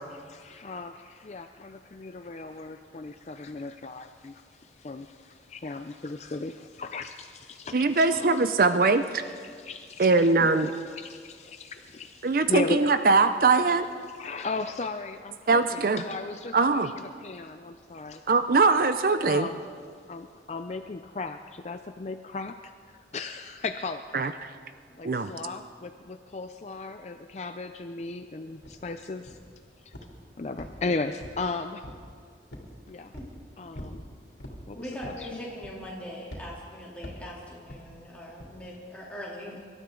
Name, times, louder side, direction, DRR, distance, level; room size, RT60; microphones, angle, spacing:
voice 1, 0.3-8.4 9.4-10.1 10.9-12.8 13.7-13.8 14.1-16.9 17.2-18.2 19.2-19.6 20.1-22.7 23.1-24.3 25.0-29.4 29.9-30.0 30.4-31.8 32.9-33.1 33.6-34.0 34.7-35.4, left 3 dB, 40° left, 8 dB, 0.4 m, -36 dB
voice 2, 7.7-9.2 10.0-10.7 12.2-13.9 15.5-16.0 16.5-16.9 18.3-19.5 24.1-24.5 25.0-25.3, right 3 dB, 50° right, 10 dB, 0.5 m, -22 dB
sound 1, 28.6-28.8 29.3-29.6 29.9-30.2 30.6-31.5 31.8-32.1 32.5-32.7 33.1-33.4 33.7-34.0 34.4-34.6 35.0-35.3 35.6-35.9 36.3-36.5 37.0-37.3 37.7-37.9 38.4-38.6, equal, 90° left, 2.8 m, -42 dB
voice 3, 34.7-39.6, equal, 5° left, -5 dB, 3.0 m, -41 dB
24.5 x 12.5 x 3.8 m, 2.1 s
head